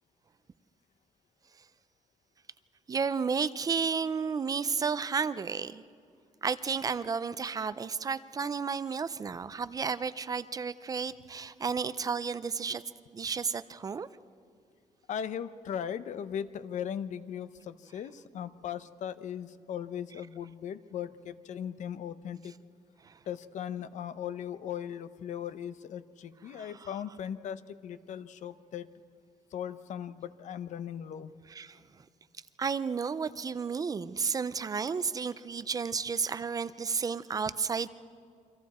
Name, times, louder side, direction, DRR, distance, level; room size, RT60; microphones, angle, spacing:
voice 1, 2.9-5.8 6.4-12.8 13.1-14.1 23.0-23.1 26.5-26.9 31.5-31.8 32.6-37.9, right 5 dB, 30° right, 15 dB, 0.4 m, -32 dB
voice 2, 15.1-22.5 23.3-28.9 29.5-31.3, left 9 dB, 65° left, 13 dB, 0.7 m, -38 dB
29.0 x 24.5 x 4.3 m, 2.2 s
wide cardioid pair, 180°, 13 cm